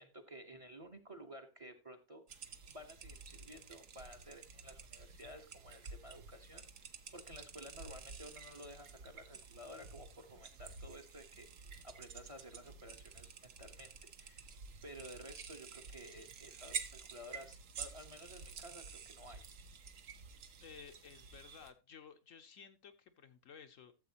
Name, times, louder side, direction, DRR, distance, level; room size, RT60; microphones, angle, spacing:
voice 1, 0.0-2.2 2.7-6.6 7.1-14.4 14.8-19.5, equal, 25° right, 8 dB, 1.1 m, -53 dB
sound 1, 2.3-21.7, right 5 dB, 60° right, 1.2 m, -50 dB
voice 2, 20.6-23.9, left 7 dB, 65° left, 8 dB, 1.1 m, -55 dB
13.0 x 7.6 x 2.9 m, 0.29 s
omnidirectional pair, 1.6 m